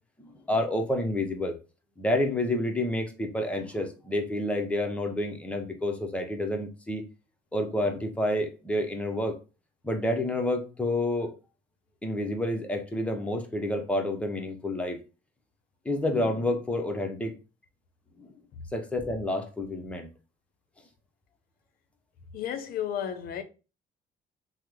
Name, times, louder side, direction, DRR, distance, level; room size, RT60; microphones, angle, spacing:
voice 1, 0.2-1.6 2.0-7.0 7.5-9.3 9.8-11.3 12.0-15.0 15.8-17.3 18.2-18.3 18.7-20.1, left 1 dB, 5° left, 0.6 m, -29 dB
voice 2, 22.3-23.4, left 9 dB, 60° left, 0.6 m, -33 dB
3.0 x 2.0 x 3.5 m
cardioid pair, 110°, 17 cm